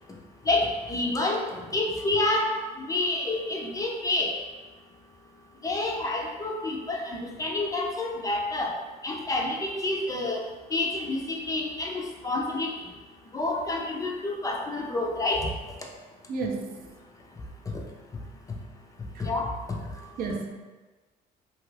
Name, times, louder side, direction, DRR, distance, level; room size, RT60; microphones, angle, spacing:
voice 1, 0.5-2.5 2.8-4.3 5.6-8.7 9.0-10.4 10.7-12.7 13.3-15.5 19.2-19.5, left 2 dB, 20° left, 0 dB, 0.4 m, -28 dB
voice 2, 16.3-16.8 19.1-19.3 20.2-20.5, right 4 dB, 60° right, 2 dB, 0.4 m, -32 dB
2.8 x 2.3 x 3.1 m, 1.3 s
cardioid pair, 110°, 17 cm